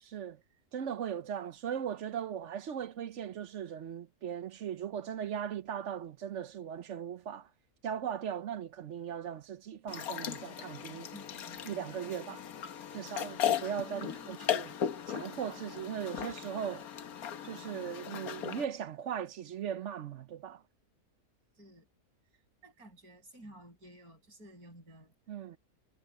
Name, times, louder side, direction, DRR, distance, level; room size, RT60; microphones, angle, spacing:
voice 1, 0.0-0.4 0.7-7.5 7.8-11.1 11.6-12.4 12.9-14.7 15.1-16.9 17.4-20.6 25.3-25.6, right 8 dB, 60° right, 1.0 m, -38 dB
sound 1, 9.9-18.6, left 9 dB, 80° left, 1.5 m, -37 dB
voice 2, 11.1-12.7 13.9-14.4 21.6-21.9 22.3-25.1, right 1 dB, 85° right, 7.5 m, -54 dB
omnidirectional pair, 1.6 m